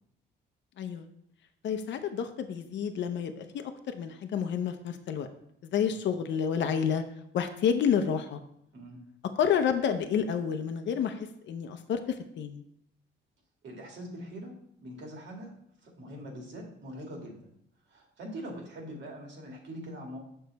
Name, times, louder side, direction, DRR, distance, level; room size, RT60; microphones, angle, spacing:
voice 1, 1.6-5.3 5.7-7.0 7.3-8.4 9.4-11.2 11.5-12.0 12.4-12.6, left 7 dB, 65° left, 7 dB, 0.7 m, -29 dB
voice 2, 8.7-9.0 13.6-15.5 15.8-17.5 17.9-20.2, equal, 65° right, 1 dB, 2.0 m, -43 dB
6.6 x 5.5 x 4.0 m, 0.72 s
cardioid pair, 90°, 20 cm